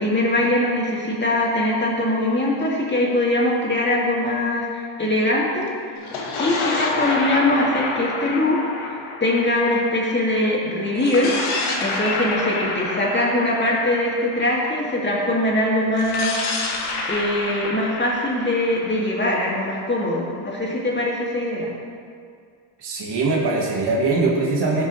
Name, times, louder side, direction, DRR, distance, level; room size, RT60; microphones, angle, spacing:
voice 1, 0.0-5.7 6.4-8.6 9.2-11.4 11.8-16.4 17.1-21.7, left 1 dB, 20° left, -4 dB, 2.3 m, -22 dB
sound 1, 6.0-10.4 11.0-14.9 15.9-19.8, left 2 dB, 90° left, 1.1 m, -28 dB
voice 2, 22.8-24.9, right 3 dB, 55° right, -3 dB, 1.6 m, -21 dB
14.5 x 5.3 x 3.2 m, 2.2 s
cardioid pair, 80°, 48 cm